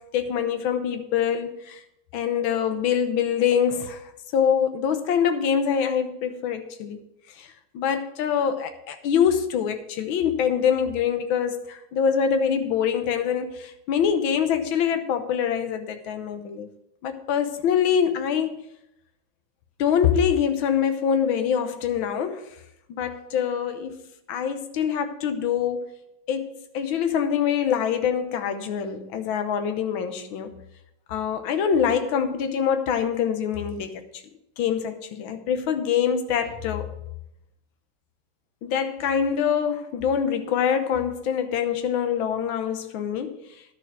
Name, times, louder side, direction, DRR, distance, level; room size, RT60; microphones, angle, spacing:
voice 1, 0.0-1.8 2.1-7.0 7.3-16.7 17.0-18.7 19.8-22.4 22.9-24.0 24.3-25.9 26.3-30.6 31.1-34.2 34.6-36.9 38.6-43.4, left 8 dB, 75° left, 1.7 m, -25 dB
11.5 x 6.8 x 6.0 m
omnidirectional pair, 2.3 m